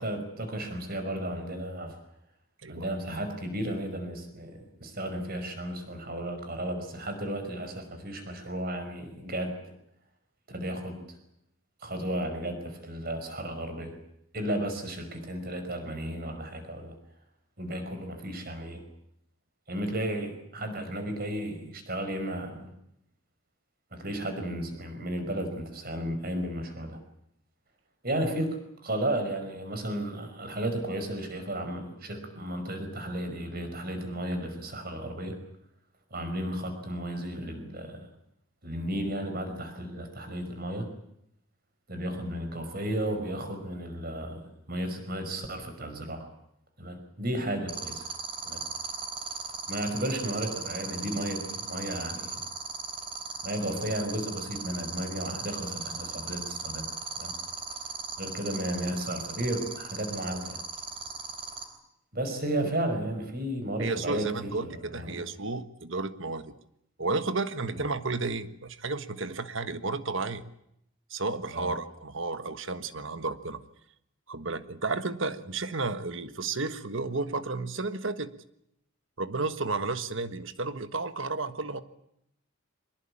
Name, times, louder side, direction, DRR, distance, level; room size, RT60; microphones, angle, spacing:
voice 1, 0.0-1.9 2.7-9.6 10.5-11.2 11.8-14.0 14.3-17.0 17.6-18.8 19.7-22.7 23.9-27.0 28.0-35.4 36.1-38.1 38.6-40.9 41.9-46.3 46.8-48.1 48.4-48.6 49.7-52.4 53.4-57.3 58.2-60.6 62.1-65.2 67.7-67.8 71.5-71.7, right 1 dB, 45° right, 7 dB, 5.3 m, -34 dB
sound 1, 47.7-61.6, right 6 dB, 25° right, 3.9 m, -36 dB
voice 2, 63.8-66.5 67.0-70.4 71.1-73.6 74.3-78.3 79.2-81.8, right 3 dB, 60° right, 12 dB, 1.5 m, -32 dB
24.5 x 20.5 x 8.7 m, 0.77 s
head